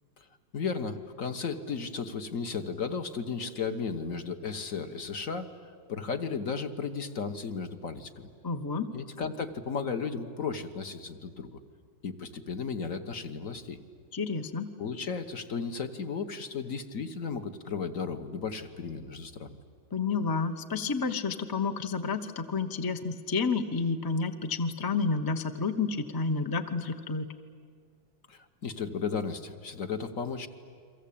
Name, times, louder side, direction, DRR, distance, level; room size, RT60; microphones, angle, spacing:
voice 1, 0.5-5.5 5.9-8.3 8.9-11.6 12.0-13.8 14.8-19.6 28.3-30.5, left 5 dB, 45° left, 8 dB, 1.3 m, -34 dB
voice 2, 8.4-8.9 14.1-14.7 19.9-27.3, left 4 dB, 25° left, 7 dB, 0.5 m, -30 dB
30.0 x 23.5 x 8.6 m, 2.1 s
omnidirectional pair, 2.2 m